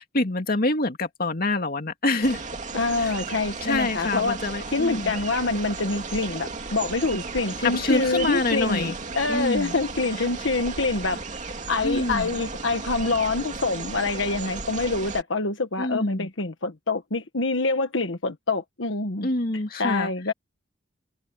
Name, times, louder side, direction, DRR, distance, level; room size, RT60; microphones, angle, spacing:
voice 1, 0.0-2.4 3.0-3.1 3.6-5.1 7.6-9.0 9.3-9.7 11.8-12.3 15.8-16.3 19.2-20.1, left 2 dB, 50° left, 2.4 m, -26 dB
sound 1, 2.2-15.2, right 4 dB, 40° right, 2.6 m, -35 dB
voice 2, 2.7-4.4 4.7-19.3 19.8-20.3, left 3 dB, 80° left, 1.4 m, -26 dB
head